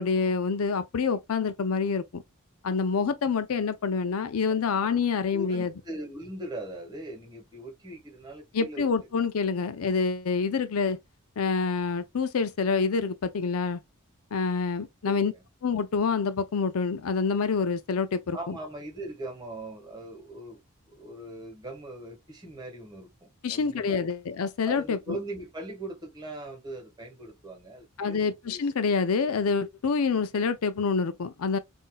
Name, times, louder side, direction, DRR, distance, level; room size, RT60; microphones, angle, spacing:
voice 1, 0.0-2.2 2.6-5.7 8.5-11.0 11.4-13.8 14.3-15.3 15.6-18.5 23.4-25.2 28.0-31.6, left 5 dB, 75° left, 0.5 m, -27 dB
voice 2, 5.3-8.9 15.0-15.4 18.3-20.6 20.9-24.0 24.6-28.6, right 1 dB, 20° right, 1.4 m, -40 dB
5.6 x 2.6 x 2.2 m
head